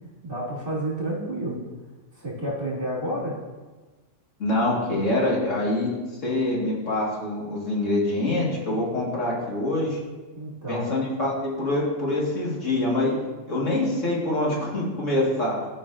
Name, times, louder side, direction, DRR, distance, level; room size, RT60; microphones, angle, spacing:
voice 1, 0.2-1.6 2.1-3.4 10.3-10.9, right 1 dB, 45° right, -6 dB, 2.5 m, -30 dB
voice 2, 4.4-5.9 6.2-10.0 10.7-13.1 13.5-15.6, left 1 dB, 80° left, -4 dB, 2.1 m, -25 dB
13.0 x 5.3 x 2.5 m, 1.3 s
omnidirectional pair, 1.3 m